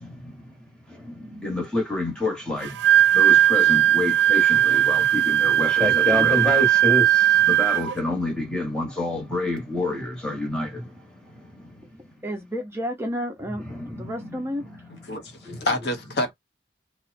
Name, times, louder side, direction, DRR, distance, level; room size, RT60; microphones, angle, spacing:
voice 1, 1.4-2.7 3.1-7.0 7.5-10.7, left 2 dB, 5° left, 0.9 m, -27 dB
Wind instrument woodwind instrument, 2.6-8.0, right 11 dB, 85° right, 0.3 m, -18 dB
voice 2, 12.2-14.7, equal, 15° right, 0.5 m, -31 dB
voice 3, 15.1-16.3, left 1 dB, 70° left, 0.7 m, -27 dB
2.6 x 2.0 x 2.5 m
head